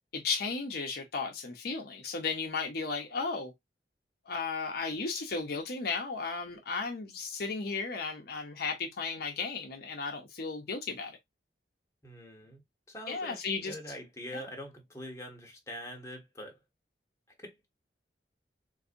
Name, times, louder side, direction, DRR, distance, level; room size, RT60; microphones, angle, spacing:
voice 1, 0.1-3.5 4.3-11.2 13.1-13.7 14.3-14.4, left 4 dB, 60° left, 0.8 m, -35 dB
voice 2, 12.0-12.6 12.9-13.4 13.6-16.6 17.4-17.6, equal, 15° left, 1.1 m, -44 dB
4.0 x 2.6 x 2.5 m
head